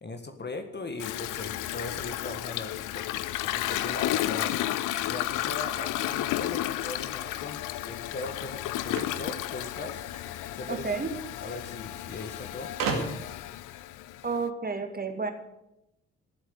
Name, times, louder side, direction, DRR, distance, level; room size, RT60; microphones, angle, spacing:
voice 1, 0.0-4.5 5.0-12.7, left 3 dB, 30° left, 7 dB, 1.6 m, -39 dB
Toilet flush, 1.0-14.4, left 14 dB, 60° left, 0.7 m, -32 dB
sound 1, 8.9-10.3 11.4-11.5 11.7-11.8 12.8-13.4, right 4 dB, 65° right, 2.3 m, -33 dB
voice 2, 10.7-11.1 14.2-15.3, right 4 dB, 25° right, 6 dB, 2.2 m, -31 dB
14.5 x 8.0 x 8.2 m, 0.87 s
figure-of-eight pair, 40°, 36 cm